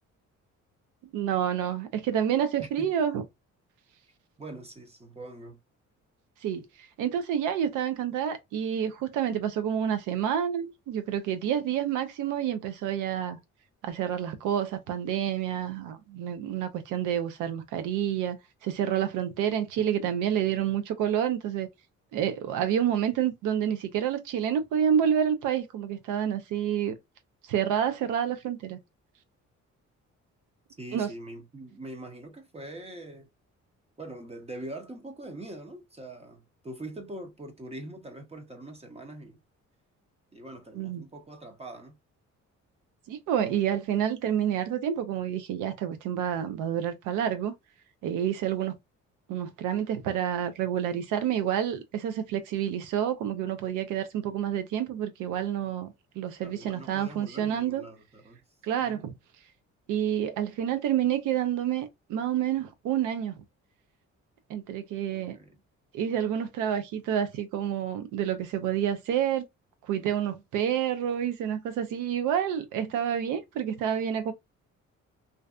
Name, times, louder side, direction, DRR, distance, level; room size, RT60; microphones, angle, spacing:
voice 1, 1.1-3.2 6.4-6.7 7.0-13.4 13.8-18.4 18.6-21.7 22.1-26.9 27.5-28.8 30.9-31.1 40.7-41.0 43.1-47.5 48.0-48.8 49.3-57.8 58.6-59.1 59.9-63.4 64.5-65.4 65.9-69.5 69.9-74.3, right 9 dB, 90° right, 0.5 m, -28 dB
voice 2, 4.4-5.6 30.8-33.3 34.0-39.4 40.3-42.0 56.4-58.4 58.8-59.1 65.1-65.6, right 1 dB, 20° right, 0.6 m, -43 dB
2.6 x 2.2 x 2.3 m
cardioid pair, 90°, 30 cm